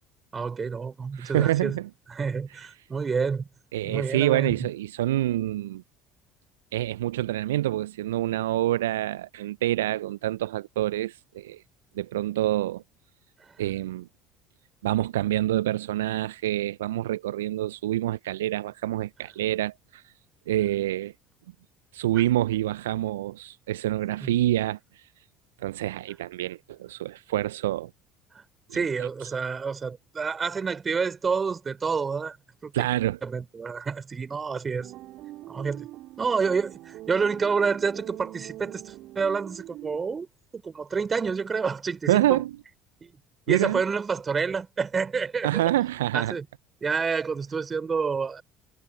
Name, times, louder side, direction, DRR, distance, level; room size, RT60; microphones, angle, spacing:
voice 1, 0.3-1.8 2.1-3.5 3.8-4.7 13.4-13.5 24.2-24.3 28.3-28.4 28.7-32.4 32.6-32.9 33.2-34.9 35.5-35.9 36.2-40.3 40.5-42.4 43.0-43.1 43.5-45.6 46.1-46.5 46.8-48.4, right 5 dB, 30° right, 3.9 m, -28 dB
voice 2, 1.2-1.9 3.7-5.8 6.7-11.6 12.0-12.8 13.6-14.1 14.8-20.0 20.5-21.1 21.9-25.0 25.6-27.9 29.0-29.1 32.7-33.2 42.1-42.5 43.5-43.8 45.4-46.3, right 14 dB, 75° right, 0.7 m, -27 dB
sound 1, 34.8-40.0, right 16 dB, 55° right, 4.3 m, -43 dB
figure-of-eight pair, 60°, 0 cm